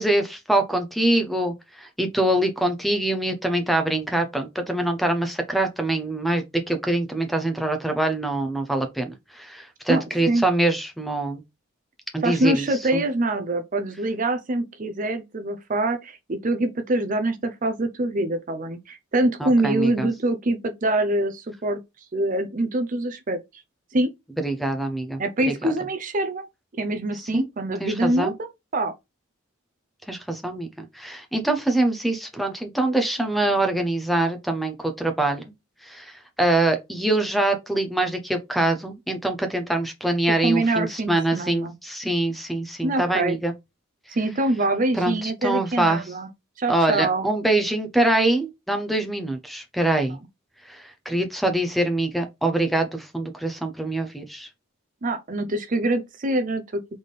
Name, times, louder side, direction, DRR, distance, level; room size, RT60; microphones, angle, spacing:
voice 1, 0.0-11.4 12.1-12.7 12.9-13.0 19.4-20.1 24.4-25.5 27.3-27.4 27.8-28.3 30.1-30.7 30.9-35.4 35.8-43.5 44.9-46.0 46.7-50.2 50.6-54.5, right 2 dB, ahead, 0.7 m, -24 dB
voice 2, 9.9-10.5 12.2-21.8 22.1-23.4 23.9-24.1 25.2-26.5 26.8-28.9 40.4-41.7 42.8-43.4 44.1-46.3 46.6-47.3 55.0-56.8, right 2 dB, 40° right, 0.5 m, -24 dB
4.1 x 3.5 x 3.2 m
head